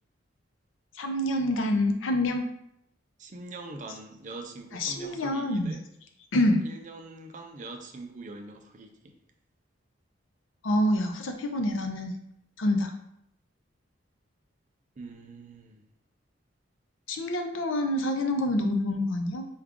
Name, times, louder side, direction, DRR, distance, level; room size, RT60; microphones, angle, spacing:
voice 1, 1.0-2.5 4.7-5.7 6.3-6.6 10.6-12.1 12.6-12.9 17.1-19.5, left 1 dB, 90° left, 5 dB, 0.6 m, -26 dB
voice 2, 3.2-5.8 6.6-9.1 15.0-15.8, right 2 dB, 40° right, 4 dB, 0.5 m, -43 dB
4.7 x 2.3 x 3.6 m, 0.76 s
head